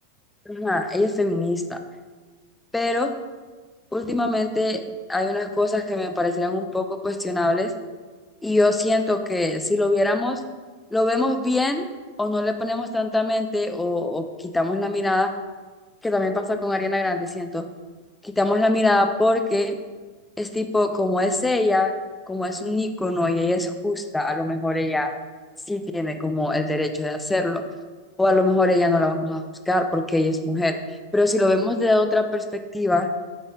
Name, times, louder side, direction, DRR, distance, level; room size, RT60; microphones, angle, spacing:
voice 1, 0.5-1.8 2.7-3.1 3.9-7.7 8.4-10.4 10.9-11.9 12.2-14.2 14.5-15.3 16.0-17.7 18.2-19.8 20.4-21.9 22.3-25.1 25.7-27.6 28.2-30.8 31.1-33.1, left 2 dB, 5° left, 7 dB, 0.6 m, -23 dB
9.3 x 4.1 x 5.1 m, 1.4 s
figure-of-eight pair, 90°, 0 cm